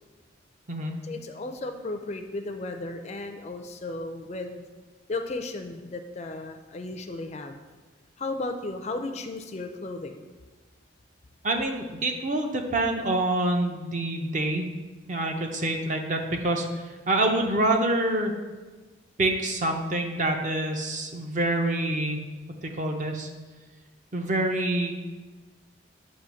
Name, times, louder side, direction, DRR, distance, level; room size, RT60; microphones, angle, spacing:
voice 1, 1.0-4.6 5.1-7.6 8.2-10.2, left 2 dB, 35° left, 6 dB, 0.4 m, -35 dB
voice 2, 11.4-14.7 15.1-18.3 19.2-22.2 22.6-23.3 24.1-24.9, right 1 dB, 40° right, 3 dB, 0.6 m, -26 dB
8.2 x 3.0 x 6.2 m, 1.3 s
head